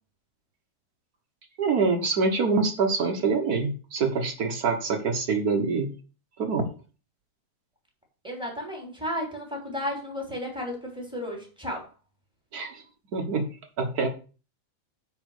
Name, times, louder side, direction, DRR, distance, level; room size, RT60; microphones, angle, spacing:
voice 1, 1.6-5.9 6.4-6.7 12.5-12.8 13.1-13.5 13.8-14.1, right 4 dB, 55° right, 5 dB, 1.0 m, -25 dB
voice 2, 8.2-11.9, left 1 dB, ahead, -1 dB, 3.2 m, -33 dB
8.9 x 4.4 x 6.5 m, 0.36 s
omnidirectional pair, 3.3 m